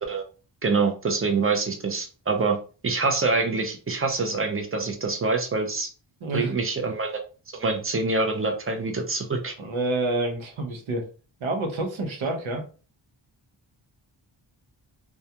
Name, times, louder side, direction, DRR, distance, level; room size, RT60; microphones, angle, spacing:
voice 1, 0.6-2.6 2.8-5.9 6.3-7.2 7.5-9.5, right 3 dB, 30° right, 4 dB, 0.5 m, -25 dB
voice 2, 6.2-6.5 9.6-11.1 11.4-12.6, right 2 dB, 80° right, 2 dB, 0.8 m, -28 dB
2.3 x 2.3 x 2.7 m, 0.36 s
wide cardioid pair, 110°, 48 cm